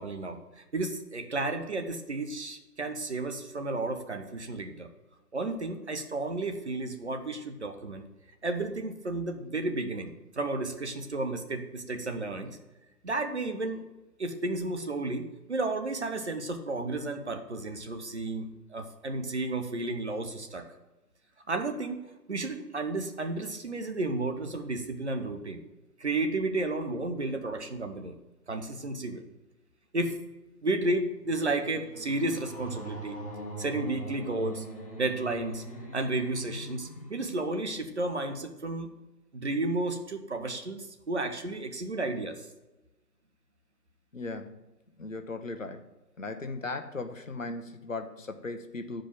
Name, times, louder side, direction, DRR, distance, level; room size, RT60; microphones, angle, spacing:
voice 1, 0.0-4.9 5.3-8.0 8.4-12.6 13.0-13.8 14.2-20.7 21.5-22.0 22.3-25.6 26.0-28.2 28.5-29.2 29.9-30.2 30.6-33.2 33.6-34.6 35.0-35.6 35.9-38.9 39.3-42.4, right 2 dB, 45° right, 5 dB, 1.1 m, -32 dB
sound 1, 31.0-38.2, right 1 dB, 20° left, 1.2 m, -42 dB
voice 2, 44.1-44.6 45.0-45.8 46.2-49.0, left 3 dB, 55° left, 7 dB, 1.1 m, -37 dB
9.8 x 5.2 x 7.6 m, 1.0 s
figure-of-eight pair, 155°, 47 cm